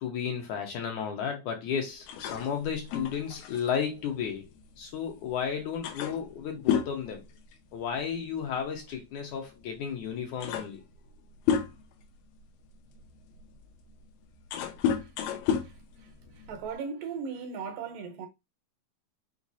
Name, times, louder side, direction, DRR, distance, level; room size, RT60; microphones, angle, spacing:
voice 1, 0.0-4.5 4.8-7.2 7.7-10.8, left 7 dB, 70° left, 2.1 m, -33 dB
sound 1, 2.1-5.1 5.4-5.5 5.8-8.0 8.3-8.6 9.5-9.6 10.1-12.0 12.6-16.7, left 7 dB, 90° left, 2.4 m, -32 dB
voice 2, 16.5-18.3, right 6 dB, 75° right, 2.5 m, -37 dB
6.1 x 2.0 x 4.0 m
omnidirectional pair, 3.9 m